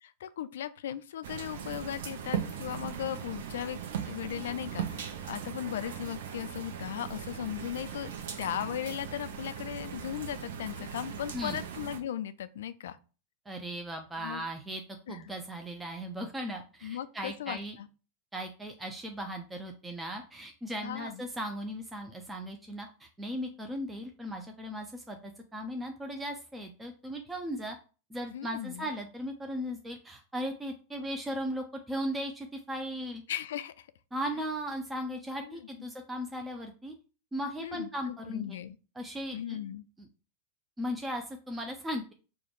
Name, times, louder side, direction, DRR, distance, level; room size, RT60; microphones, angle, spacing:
voice 1, 0.0-3.8 4.0-8.1 8.4-13.0 14.2-14.4 15.1-15.2 16.8-17.9 20.8-21.2 28.3-28.9 33.3-33.9 35.4-35.6 37.6-38.8 39.3-39.9, left 10 dB, 60° left, 0.3 m, -37 dB
sound 1, 1.2-12.0, right 8 dB, 60° right, 0.6 m, -39 dB
voice 2, 13.5-14.8 15.1-17.8 18.3-27.8 28.1-33.2 34.1-36.9 37.3-38.6 39.0-39.6 40.0-40.1 40.8-42.1, equal, 10° right, 0.5 m, -37 dB
4.9 x 2.3 x 4.5 m
figure-of-eight pair, 90°, 0 cm